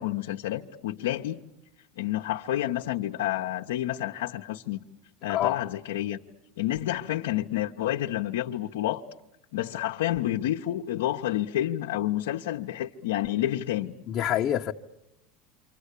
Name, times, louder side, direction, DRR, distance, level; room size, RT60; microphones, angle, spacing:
voice 1, 0.0-1.4 2.0-4.8 5.2-6.2 6.6-9.0 9.5-13.9, left 13 dB, 85° left, 1.0 m, -29 dB
voice 2, 14.1-14.7, left 11 dB, 45° left, 1.0 m, -26 dB
28.0 x 25.0 x 8.4 m
supercardioid pair, 110°, 0 cm